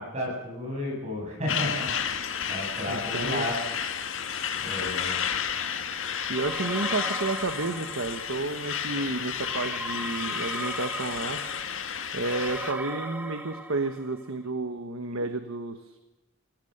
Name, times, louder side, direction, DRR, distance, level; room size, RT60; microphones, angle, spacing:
voice 1, 0.0-1.9 2.5-3.6 4.6-5.3 15.2-15.3, left 1 dB, 30° right, 0 dB, 7.4 m, -32 dB
Truck, 1.5-12.7, left 7 dB, 60° left, 1.8 m, -32 dB
voice 2, 2.9-3.5 6.3-11.4 12.1-16.0, right 2 dB, 70° right, 8 dB, 1.3 m, -31 dB
sound 1, 6.3-8.5 9.4-14.3, right 1 dB, 5° right, 1.2 m, -38 dB
26.5 x 17.0 x 6.7 m, 1.0 s
head